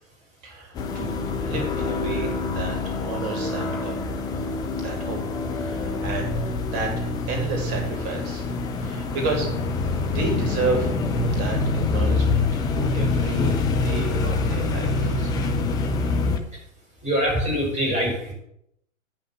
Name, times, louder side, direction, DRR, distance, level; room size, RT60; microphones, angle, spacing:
voice 1, 0.4-4.0 4.8-5.2 5.5-6.3 6.6-8.5 8.8-9.5 10.1-10.9 11.4-11.6 11.9-15.3, right 3 dB, 35° right, 1 dB, 3.1 m, -31 dB
sound 1, 0.7-16.4, left 3 dB, 10° left, 0.4 m, -25 dB
voice 2, 17.0-18.3, equal, 15° right, -1 dB, 4.5 m, -24 dB
9.2 x 5.9 x 7.2 m, 0.76 s
figure-of-eight pair, 115°, 40 cm